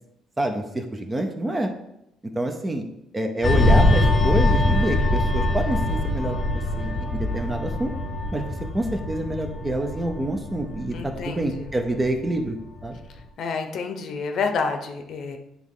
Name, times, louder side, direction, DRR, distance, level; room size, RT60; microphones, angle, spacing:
voice 1, 0.4-1.7 2.3-2.8 3.1-7.9 8.3-12.6 12.8-13.0, right 1 dB, 15° right, 4 dB, 0.6 m, -27 dB
sound 1, 3.4-12.5 12.8-13.1, left 2 dB, 20° left, 0.9 m, -23 dB
voice 2, 10.9-11.7 13.4-15.4, left 5 dB, 50° left, 6 dB, 0.8 m, -29 dB
9.9 x 3.6 x 3.7 m, 0.81 s
cardioid pair, 155°, 0 cm